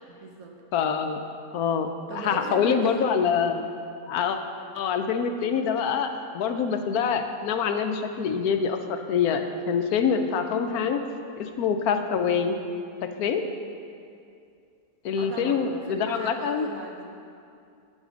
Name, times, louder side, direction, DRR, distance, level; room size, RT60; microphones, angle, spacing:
voice 1, 0.1-0.5 2.1-3.2 15.2-17.0, right 3 dB, 75° right, 1 dB, 1.3 m, -38 dB
voice 2, 0.7-1.2 1.5-3.6 4.1-4.4 4.7-11.0 11.4-12.6 13.0-13.4 15.0-16.7, left 6 dB, 90° left, 7 dB, 1.2 m, -25 dB
9.2 x 6.4 x 6.2 m, 2.4 s
omnidirectional pair, 1.6 m